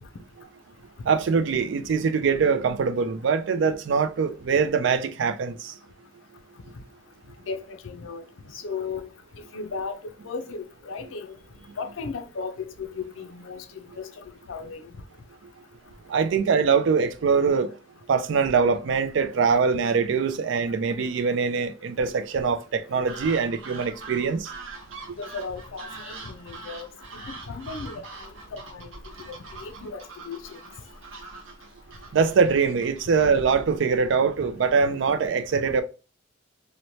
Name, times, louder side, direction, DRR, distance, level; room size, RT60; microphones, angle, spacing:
voice 1, 1.0-5.7 16.1-17.7 18.1-24.5 32.1-35.8, right 5 dB, 65° right, 0.4 m, -23 dB
voice 2, 7.5-8.2 8.6-9.1 9.5-10.0 10.2-11.3 11.8-13.6 14.0-14.1 14.5-14.8 25.2-26.9 27.3-28.0 28.5-28.9 29.6-30.6, left 4 dB, 80° left, 0.5 m, -35 dB
sound 1, 23.1-33.8, right 3 dB, 80° right, 0.7 m, -43 dB
3.0 x 2.1 x 2.7 m
head